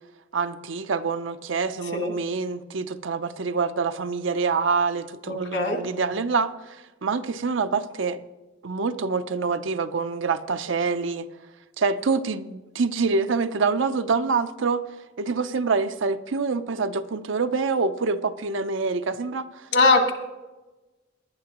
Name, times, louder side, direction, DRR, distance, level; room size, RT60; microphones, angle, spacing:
voice 1, 0.3-6.5 7.0-8.2 8.6-11.3 11.8-14.8 15.2-19.7, right 4 dB, 70° right, 10 dB, 0.6 m, -26 dB
voice 2, 5.3-5.8 19.7-20.1, left 3 dB, 60° left, 4 dB, 1.7 m, -20 dB
18.5 x 11.5 x 3.0 m, 1.2 s
head